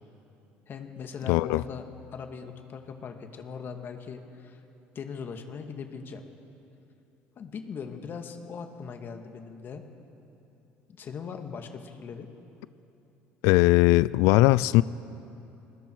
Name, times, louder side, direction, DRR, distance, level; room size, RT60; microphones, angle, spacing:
voice 1, 0.7-1.8 2.1-4.6 5.0-6.2 7.4-9.8 10.9-12.3, left 6 dB, 45° left, 5 dB, 1.9 m, -40 dB
voice 2, 1.3-1.6 13.4-14.8, left 19 dB, 80° left, 18 dB, 0.4 m, -19 dB
28.5 x 20.0 x 4.7 m, 2.9 s
supercardioid pair, 95°, 5 cm